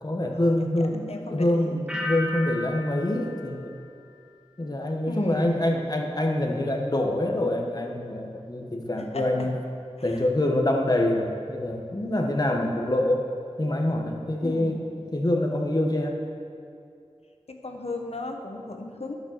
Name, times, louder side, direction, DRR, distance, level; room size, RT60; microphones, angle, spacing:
voice 1, 0.0-3.8 4.6-9.6 10.0-13.3 13.6-14.8 15.1-16.2, left 1 dB, 35° left, 2 dB, 1.3 m, -25 dB
voice 2, 1.1-1.8 5.1-5.9 9.0-9.5 10.1-10.2 14.4-15.0 17.5-19.1, left 2 dB, 70° left, 4 dB, 1.1 m, -36 dB
sound 1, 1.9-4.7 5.0-5.5, left 2 dB, 10° right, 1.6 m, -36 dB
12.0 x 6.6 x 6.7 m, 2.4 s
wide cardioid pair, 60°, 11 cm